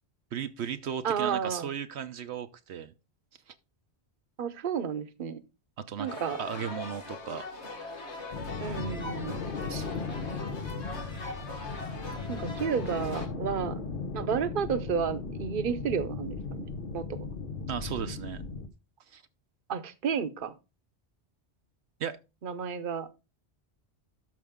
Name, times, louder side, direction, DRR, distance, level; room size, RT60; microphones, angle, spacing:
voice 1, 0.3-2.9 3.5-3.6 5.8-7.4 9.6-10.1 17.7-18.4 19.1-19.2 22.0-22.2, right 8 dB, 80° right, 1.0 m, -36 dB
voice 2, 1.0-1.7 4.4-5.4 6.0-6.4 8.6-9.4 12.3-13.8 14.1-16.7 16.9-17.2 19.7-20.5 22.4-23.1, right 7 dB, 55° right, 1.0 m, -31 dB
sound 1, 6.1-13.3, left 3 dB, 85° left, 1.8 m, -41 dB
sound 2, 8.3-18.7, left 4 dB, 55° left, 1.1 m, -37 dB
12.5 x 5.2 x 3.6 m
omnidirectional pair, 1.1 m